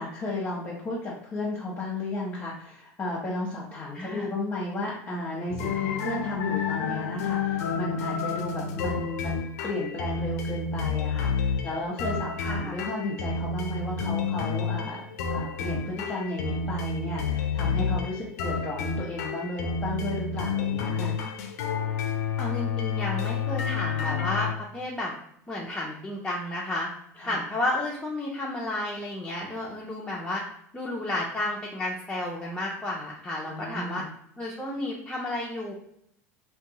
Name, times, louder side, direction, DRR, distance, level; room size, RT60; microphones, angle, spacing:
voice 1, 0.0-15.0 15.3-21.2 27.2-27.4 33.4-34.1, left 2 dB, 25° left, -5 dB, 0.8 m, -34 dB
voice 2, 3.9-4.3 12.4-12.8 22.4-24.5 24.7-25.1 25.5-26.9 27.2-30.4 30.7-34.0 34.4-35.7, left 1 dB, 10° left, -4 dB, 0.5 m, -32 dB
sound 1, 5.5-24.5, left 5 dB, 70° left, 0.4 m, -30 dB
2.6 x 2.2 x 2.7 m, 0.70 s
hypercardioid pair, 80°, 9 cm